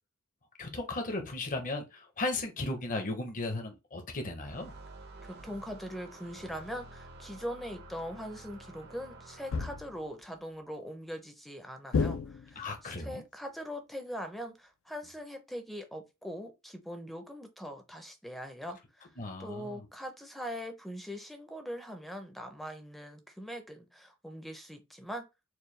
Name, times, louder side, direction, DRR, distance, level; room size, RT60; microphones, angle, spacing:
voice 1, 0.6-4.7 12.6-13.2 19.2-19.9, left 2 dB, 40° left, 0.7 m, -36 dB
sound 1, 4.4-10.1, right 2 dB, 50° right, 0.6 m, -50 dB
voice 2, 5.2-19.1 19.4-25.2, equal, ahead, 0.5 m, -42 dB
sound 2, 9.5-10.1 11.9-12.8, left 5 dB, 65° left, 0.4 m, -31 dB
4.5 x 2.2 x 3.1 m
head